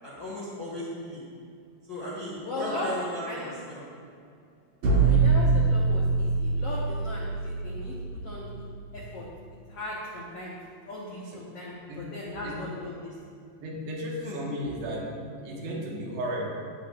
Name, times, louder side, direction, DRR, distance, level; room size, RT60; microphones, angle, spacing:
voice 1, 0.0-1.2 1.9-3.8 4.9-5.2 14.2-14.4, left 1 dB, 55° left, -7 dB, 1.1 m, -36 dB
voice 2, 2.4-2.9 3.3-3.5 5.0-8.0 8.2-8.6 8.9-10.6 10.9-13.1, left 1 dB, 80° left, -5 dB, 1.3 m, -37 dB
sound 1, 4.8-8.7, right 4 dB, 55° right, 2.0 m, -24 dB
voice 3, 13.6-16.5, equal, 85° right, -2 dB, 3.6 m, -34 dB
16.5 x 8.7 x 2.5 m, 2.4 s
omnidirectional pair, 4.6 m